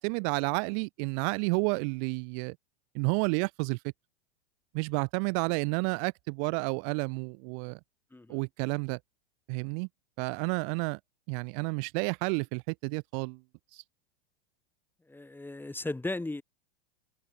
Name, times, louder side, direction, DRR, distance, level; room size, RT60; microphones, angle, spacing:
voice 1, 0.0-2.6 2.9-3.8 4.7-7.8 8.3-9.0 9.5-9.9 10.2-11.0 11.3-13.4 13.7-13.8, right 40 dB or more, 45° right, 1.9 m, -30 dB
voice 2, 8.1-8.4 15.1-16.4, left 2 dB, 5° left, 5.9 m, -36 dB
figure-of-eight pair, 95°, 31 cm